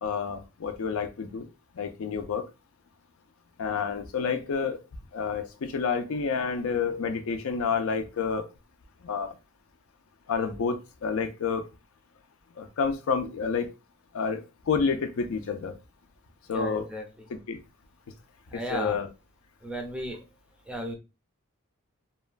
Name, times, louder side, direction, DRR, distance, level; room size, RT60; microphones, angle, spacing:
voice 1, 0.0-1.5 1.7-2.5 3.6-4.8 5.1-8.4 9.0-9.3 10.3-11.7 12.6-13.7 14.1-15.7 16.5-16.8 17.3-17.6 18.5-19.1, left 5 dB, 70° left, 7 dB, 0.4 m, -29 dB
voice 2, 16.5-17.0 18.5-19.0 19.6-20.2 20.7-20.9, equal, 5° right, 3 dB, 0.5 m, -35 dB
2.9 x 2.2 x 2.3 m, 0.28 s
head